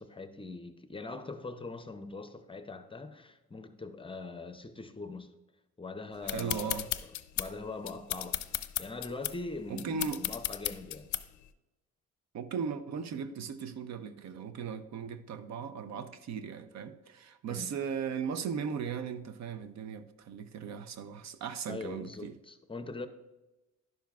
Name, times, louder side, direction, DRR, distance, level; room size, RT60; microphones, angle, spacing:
voice 1, 0.0-5.3 5.8-7.0 7.4-8.4 8.8-11.1 17.5-17.7 21.7-23.1, left 3 dB, 20° left, 0.5 m, -42 dB
voice 2, 6.2-6.9 9.7-10.2 12.3-22.3, right 6 dB, 65° right, 0.6 m, -37 dB
sound 1, 6.3-11.5, left 14 dB, 75° left, 0.5 m, -36 dB
10.5 x 7.0 x 2.3 m
cardioid pair, 90°, 30 cm